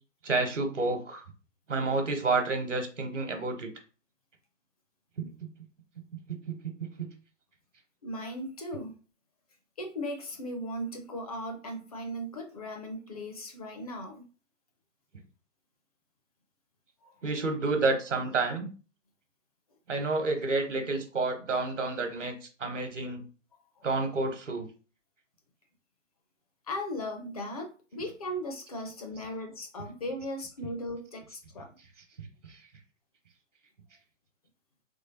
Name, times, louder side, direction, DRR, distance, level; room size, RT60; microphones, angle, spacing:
voice 1, 0.2-1.2 1.7-3.7 5.2-5.5 6.3-7.1 17.2-18.7 19.9-23.2 23.8-24.7 29.2-29.3 32.2-32.6, right 3 dB, 65° right, 6 dB, 1.1 m, -30 dB
voice 2, 8.0-9.0 9.8-14.2 17.0-17.1 26.7-31.7, equal, 30° left, 3 dB, 0.6 m, -37 dB
3.6 x 3.2 x 2.8 m, 0.36 s
figure-of-eight pair, 130°, 39 cm